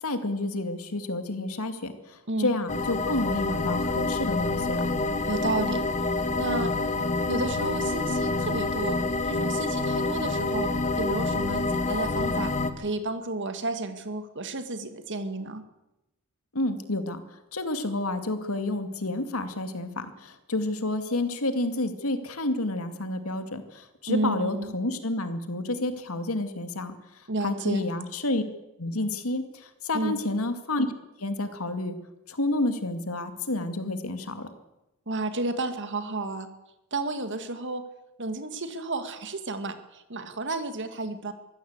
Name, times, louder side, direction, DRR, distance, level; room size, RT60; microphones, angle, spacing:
voice 1, 0.0-4.8 16.5-17.2 17.5-26.9 27.4-28.4 28.8-29.5 29.8-30.9 31.2-32.0 32.3-34.5, left 2 dB, 75° left, 9 dB, 2.3 m, -29 dB
sound 1, 2.7-12.7, left 3 dB, 35° left, 1.5 m, -27 dB
voice 2, 5.2-5.9 6.4-6.8 7.3-9.0 9.2-15.6 24.1-24.7 27.3-27.9 29.9-30.2 35.1-36.5 36.9-37.8 38.2-41.3, right 2 dB, 55° right, 9 dB, 2.2 m, -31 dB
23.5 x 15.5 x 8.2 m, 0.92 s
head